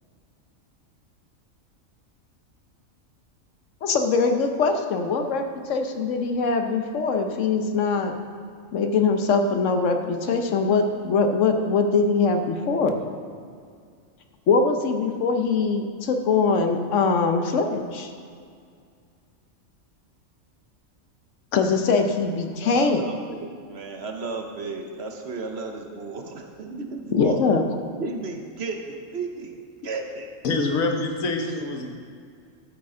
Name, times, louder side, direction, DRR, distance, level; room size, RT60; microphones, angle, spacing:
voice 1, 3.8-8.2 8.7-13.0 14.5-18.1 21.5-23.1 27.1-27.6, left 4 dB, 70° left, 5 dB, 1.1 m, -22 dB
voice 2, 22.6-27.6 28.0-29.5 29.8-30.3 31.0-31.1, right 3 dB, 55° right, 4 dB, 1.0 m, -34 dB
voice 3, 30.4-31.9, left 3 dB, 85° left, 3 dB, 1.4 m, -25 dB
12.5 x 8.3 x 3.8 m, 2.2 s
omnidirectional pair, 1.4 m